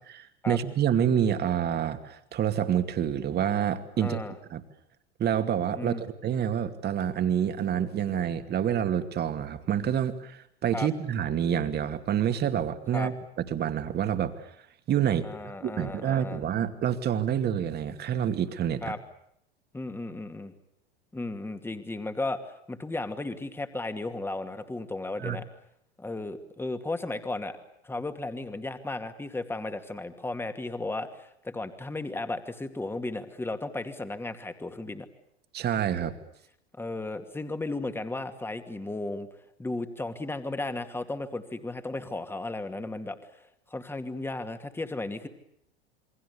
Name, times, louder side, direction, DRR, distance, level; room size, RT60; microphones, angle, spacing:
voice 1, 0.5-4.2 4.5-4.6 5.2-14.3 14.9-19.0 25.2-25.4 35.5-36.1, right 9 dB, 30° right, 9 dB, 2.5 m, -27 dB
voice 2, 4.0-4.4 5.7-6.0 10.7-10.9 12.9-13.1 15.2-16.4 18.8-19.0 19.7-20.5 21.1-25.4 26.0-27.6 27.8-35.1 36.8-39.3 39.6-43.2 43.7-45.3, left 2 dB, 5° left, 8 dB, 2.4 m, -34 dB
28.0 x 23.5 x 8.4 m, 0.74 s
figure-of-eight pair, 85°, 32 cm